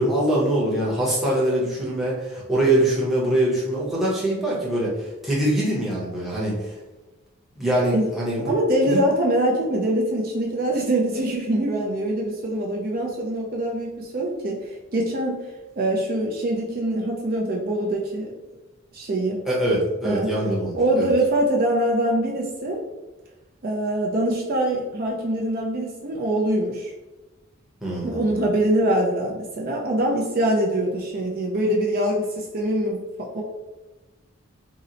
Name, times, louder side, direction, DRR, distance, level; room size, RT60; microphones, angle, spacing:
voice 1, 0.0-6.8 7.6-8.5 8.8-9.0 19.5-21.1 27.8-28.4, right 1 dB, ahead, -7 dB, 0.7 m, -23 dB
voice 2, 8.4-15.4 15.8-18.3 18.9-19.5 20.0-20.3 20.7-22.8 23.6-26.9 28.0-33.4, right 1 dB, 40° right, -2 dB, 0.4 m, -24 dB
2.8 x 2.0 x 3.8 m, 1.1 s
head